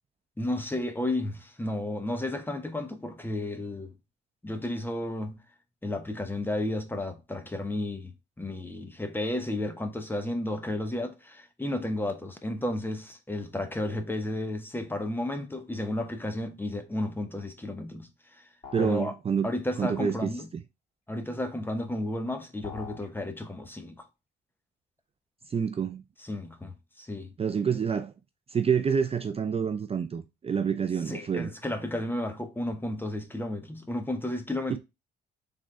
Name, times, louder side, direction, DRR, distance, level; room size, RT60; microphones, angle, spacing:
voice 1, 0.4-3.9 4.4-5.4 5.8-18.5 18.8-19.1 19.4-20.5 21.1-24.1 26.2-27.3 31.1-34.8, left 1 dB, 10° left, 1.0 m, -33 dB
sound 1, 18.6-19.1 22.6-23.1, left 7 dB, 35° left, 2.7 m, -42 dB
voice 2, 18.7-19.5 19.8-20.6 25.5-26.0 27.4-28.1 28.5-31.5 34.7-34.8, right 7 dB, 30° right, 0.4 m, -28 dB
3.7 x 3.6 x 3.1 m
cardioid pair, 90°, 20 cm